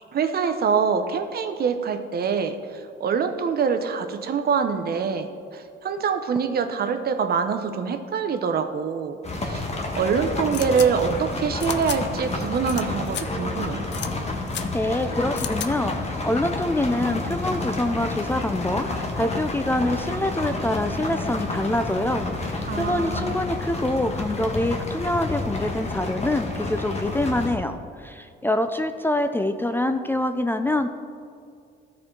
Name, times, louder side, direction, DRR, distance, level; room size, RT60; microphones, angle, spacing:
voice 1, 0.1-9.2 9.4-9.7 9.9-13.8 22.7-23.4, right 6 dB, 50° right, 8 dB, 0.6 m, -25 dB
sound 1, 9.2-27.5, left 2 dB, 35° left, 1.2 m, -30 dB
sound 2, 10.5-10.9 11.6-12.0 12.7-12.8 13.1-13.2 13.9-14.1 14.5-14.6 15.4-15.7, left 10 dB, 65° left, 0.5 m, -32 dB
voice 2, 14.7-30.9, left 1 dB, 10° left, 7 dB, 0.3 m, -25 dB
13.0 x 4.6 x 3.7 m, 2.3 s
cardioid pair, 90°, 20 cm